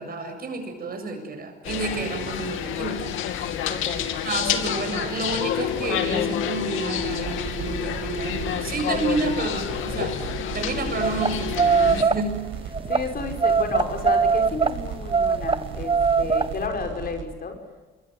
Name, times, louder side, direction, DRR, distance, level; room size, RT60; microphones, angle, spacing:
voice 1, 0.0-3.5 4.1-10.2 10.5-12.4, right 3 dB, 50° right, 6 dB, 7.5 m, -30 dB
sound 1, 1.6-12.0, left 10 dB, 90° left, 2.6 m, -28 dB
voice 2, 3.7-4.1 12.9-17.6, left 4 dB, 50° left, 5 dB, 5.5 m, -32 dB
sound 2, 7.0-17.2, right 7 dB, 80° right, 5.3 m, -36 dB
sound 3, 11.0-11.3 11.5-12.2 12.7-13.0 13.4-14.7 15.1-16.5, right 5 dB, 25° right, 1.5 m, -20 dB
26.5 x 22.5 x 9.5 m, 1.3 s
cardioid pair, 90°, 20 cm